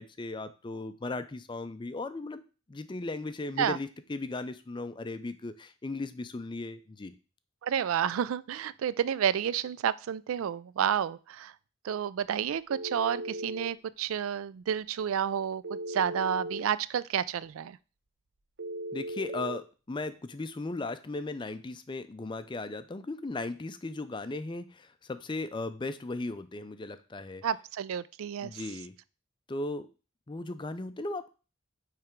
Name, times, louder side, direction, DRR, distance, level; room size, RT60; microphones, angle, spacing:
voice 1, 0.0-2.4 2.7-7.2 18.9-27.4 28.4-28.9 29.5-29.9 30.3-31.3, left 2 dB, 20° left, 12 dB, 0.4 m, -37 dB
voice 2, 7.6-11.5 11.8-17.8 27.4-28.6, right 8 dB, 80° right, 18 dB, 0.3 m, -30 dB
Telephone, 12.7-13.7 15.6-16.7 18.6-19.6, right 1 dB, 55° right, 0.8 m, -37 dB
8.6 x 3.3 x 4.5 m, 0.34 s
head